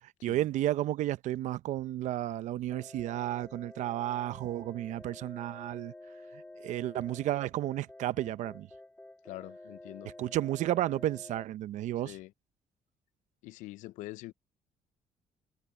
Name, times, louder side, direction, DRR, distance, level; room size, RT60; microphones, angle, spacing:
voice 1, 0.0-5.9 6.3-8.7 10.2-12.2, right 14 dB, 75° right, 0.7 m, -32 dB
sound 1, 2.7-11.4, left 2 dB, 10° left, 1.4 m, -50 dB
voice 2, 9.2-10.1 12.1-12.3 13.4-14.3, left 17 dB, 90° left, 0.5 m, -44 dB
cardioid pair, 85°, 12 cm